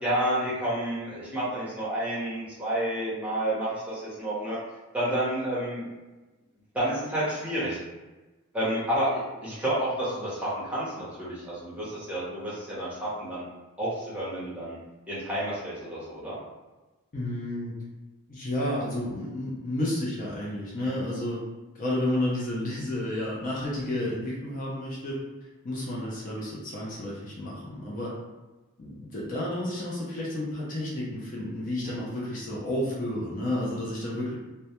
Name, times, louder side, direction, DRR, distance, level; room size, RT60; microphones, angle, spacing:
voice 1, 0.0-4.6 4.9-5.8 6.7-7.8 8.5-13.5 13.8-14.8 15.1-16.4 20.8-20.9, right 1 dB, 5° right, -9 dB, 0.8 m, -30 dB
voice 2, 17.1-17.7 18.3-21.4 21.7-25.2 25.6-28.1 28.8-34.3, left 1 dB, 40° left, -5 dB, 0.5 m, -31 dB
2.2 x 2.1 x 2.8 m, 1.2 s
head